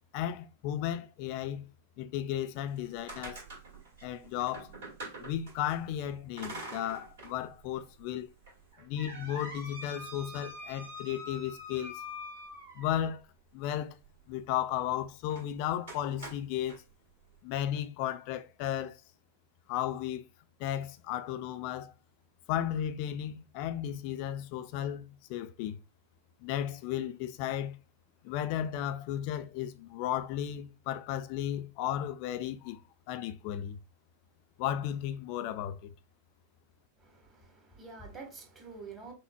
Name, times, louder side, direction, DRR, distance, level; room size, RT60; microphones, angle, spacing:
voice 1, 0.1-1.7 2.0-3.4 4.0-4.7 5.2-8.3 8.8-12.0 12.7-13.2 13.5-14.0 14.3-16.8 17.4-19.0 19.7-20.2 20.6-21.9 22.5-25.8 26.4-27.8 28.2-32.8 33.1-33.8 34.6-35.9, left 11 dB, 45° left, 0.4 m, -34 dB
sound 1, 2.7-5.8 6.4-7.4 7.7-7.8 8.5-13.1 15.3-15.5 15.9-16.8, equal, 60° right, 2.0 m, -45 dB
voice 2, 37.0-39.1, right 4 dB, 25° right, 1.3 m, -47 dB
5.7 x 2.1 x 2.3 m
figure-of-eight pair, 90°, 0 cm